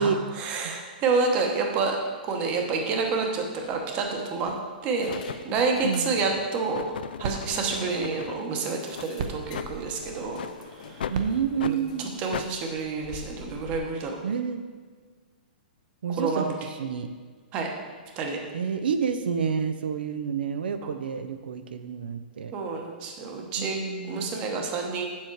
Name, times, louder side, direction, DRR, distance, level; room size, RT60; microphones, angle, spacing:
voice 1, 0.0-2.0 2.2-4.6 4.8-5.2 5.4-11.1 11.6-14.2 16.2-16.5 17.5-17.7 18.2-18.4 20.8-20.9 22.5-23.8 24.1-25.1, right 4 dB, 20° right, 2 dB, 1.0 m, -29 dB
sound 1, 2.8-3.0 3.7-4.4 4.9-6.5 6.8-7.0 7.4-7.5 7.8-7.9 8.8-13.8, left 4 dB, 50° left, 1.0 m, -46 dB
sound 2, 3.6-3.7 4.4-4.7 5.1-8.5 8.9-9.1 9.5-9.7 10.3-10.5 11.0-11.2 11.6-11.8 12.3-12.5, left 8 dB, 75° left, 0.3 m, -37 dB
sound 3, 6.7-13.1, right 5 dB, 45° right, 0.8 m, -40 dB
voice 2, 11.1-12.2 14.2-14.6 16.0-17.1 18.5-22.5 23.6-24.3, right 7 dB, 80° right, 9 dB, 0.6 m, -29 dB
7.9 x 7.4 x 4.6 m, 1.5 s
hypercardioid pair, 170°, 5 cm